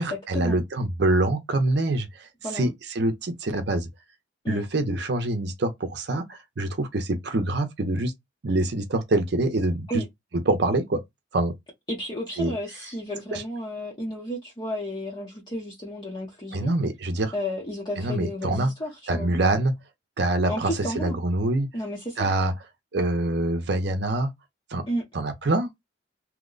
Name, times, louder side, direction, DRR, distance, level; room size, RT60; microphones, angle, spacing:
voice 1, 0.0-3.9 4.5-8.1 8.4-10.0 10.5-11.0 11.3-11.6 12.4-12.5 13.3-13.4 16.5-17.3 18.0-18.7 19.1-19.7 20.2-21.7 22.2-22.5 22.9-24.3 24.7-24.8 25.1-25.7, right 2 dB, 60° right, 0.6 m, -25 dB
voice 2, 11.9-16.7 17.3-19.3 20.5-21.2 21.7-22.3 24.9-25.0, equal, 25° left, 0.7 m, -32 dB
2.8 x 2.1 x 3.7 m
head